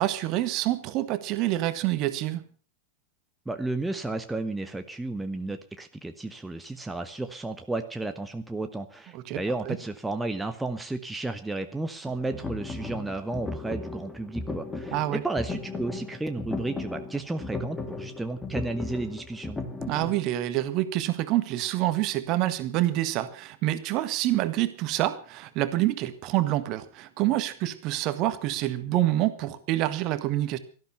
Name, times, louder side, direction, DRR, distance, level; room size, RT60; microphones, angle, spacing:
voice 1, 0.0-2.4 9.1-9.4 9.7-9.8 14.9-15.2 19.8-30.6, right 15 dB, 40° right, 11 dB, 1.7 m, -27 dB
voice 2, 3.4-19.6, right 2 dB, 5° right, 6 dB, 1.2 m, -33 dB
sound 1, 12.1-20.2, left 3 dB, 10° left, 2.8 m, -36 dB
17.5 x 13.5 x 5.8 m, 0.39 s
figure-of-eight pair, 90°, 0 cm